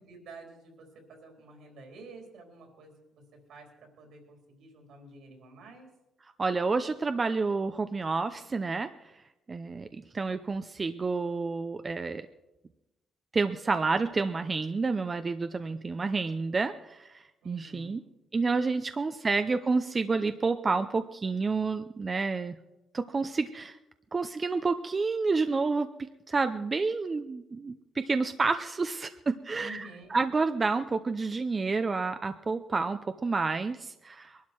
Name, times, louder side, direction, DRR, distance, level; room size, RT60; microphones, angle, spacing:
voice 1, 0.0-5.9 17.4-18.0 29.5-30.2, right 2 dB, 80° right, 2 dB, 4.1 m, -50 dB
voice 2, 6.4-8.9 9.5-12.3 13.3-18.0 18.3-22.6 22.9-23.8 24.1-25.9 26.3-34.4, right 4 dB, 30° right, 9 dB, 0.6 m, -29 dB
21.0 x 12.0 x 4.6 m, 0.97 s
cardioid pair, 90°, 0 cm